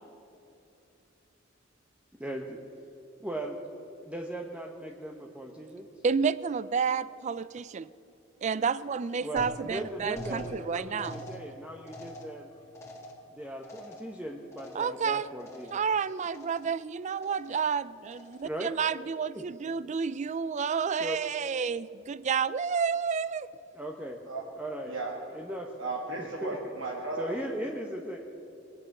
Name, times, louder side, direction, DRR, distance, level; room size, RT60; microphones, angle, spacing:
voice 1, 2.2-2.6 3.2-3.6 4.0-5.9 9.2-12.5 13.3-15.7 18.4-18.7 19.3-19.5 21.0-21.2 23.7-24.2 24.6-25.0 25.3-25.7 26.2-26.6 27.2-28.2, right 1 dB, 5° right, 0 dB, 0.8 m, -38 dB
voice 2, 6.0-7.9 8.4-11.2 14.7-15.3 15.7-23.5, right 6 dB, 35° right, 18 dB, 0.3 m, -30 dB
sound 1, 9.4-15.1 15.4-16.0 16.3-16.8 17.2-17.7 18.1-18.6, equal, 15° left, 2.1 m, -46 dB
voice 3, 25.8-27.3, right 3 dB, 70° right, -2 dB, 1.6 m, -35 dB
22.0 x 8.6 x 6.5 m, 2.9 s
head